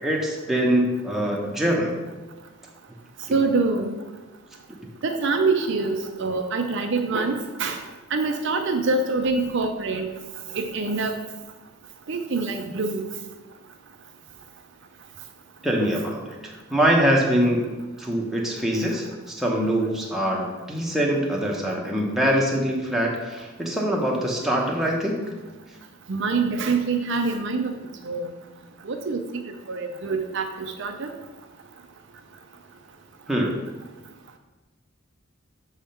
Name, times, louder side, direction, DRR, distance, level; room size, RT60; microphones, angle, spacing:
voice 1, 0.0-1.9 15.6-17.7 18.0-19.1 19.3-25.3 33.3-33.5, equal, ahead, -3 dB, 0.9 m, -23 dB
voice 2, 3.3-4.0 5.0-7.8 8.1-10.1 10.5-11.2 12.1-13.0 26.1-27.7 28.0-28.3 28.8-29.2 29.7-31.1, right 3 dB, 60° right, 5 dB, 0.5 m, -25 dB
6.4 x 3.5 x 5.7 m, 1.2 s
head